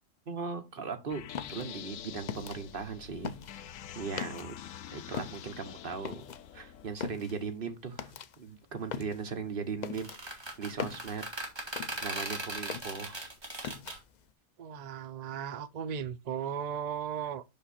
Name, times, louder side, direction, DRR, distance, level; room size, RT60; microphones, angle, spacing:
voice 1, 0.3-1.2 1.5-3.3 4.0-4.6 4.9-6.2 6.5-11.2 12.0-13.2, right 5 dB, 50° right, 1.2 m, -38 dB
sound 1, 1.1-6.9, left 10 dB, 90° left, 1.0 m, -46 dB
sound 2, 1.3-4.7 5.0-12.3 12.6-14.2, left 7 dB, 55° left, 0.5 m, -41 dB
sound 3, 9.8-14.0, right 2 dB, 20° right, 1.7 m, -39 dB
voice 2, 14.6-17.4, right 8 dB, 65° right, 0.4 m, -36 dB
5.8 x 5.4 x 4.1 m
omnidirectional pair, 1.3 m